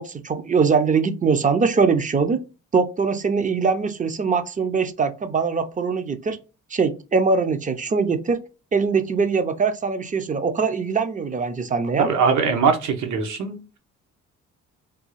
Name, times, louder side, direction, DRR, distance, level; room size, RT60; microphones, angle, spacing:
voice 1, 0.0-2.4 2.7-6.4 6.7-8.4 8.7-12.1, right 5 dB, 25° right, 0.5 m, -22 dB
voice 2, 12.0-13.8, right 5 dB, 75° right, 0.9 m, -21 dB
3.5 x 2.3 x 3.0 m
cardioid pair, 90°, 30 cm